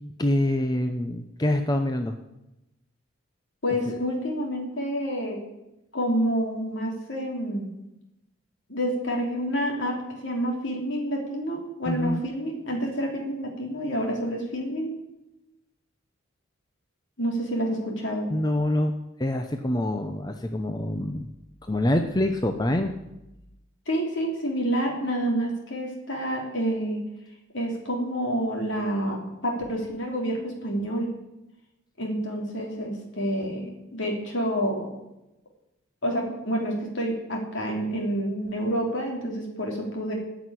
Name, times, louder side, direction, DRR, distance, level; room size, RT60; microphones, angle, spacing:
voice 1, 0.2-2.1 3.9-4.0 11.8-12.2 18.3-18.9 19.2-21.3 21.6-22.9, left 1 dB, 20° left, 6 dB, 0.6 m, -25 dB
voice 2, 3.6-5.4 5.9-7.7 8.7-14.9 17.2-18.3 23.9-27.0 27.5-31.1 32.0-34.9 36.0-40.1, equal, 60° left, 0 dB, 3.3 m, -28 dB
14.0 x 6.1 x 9.9 m, 0.93 s
head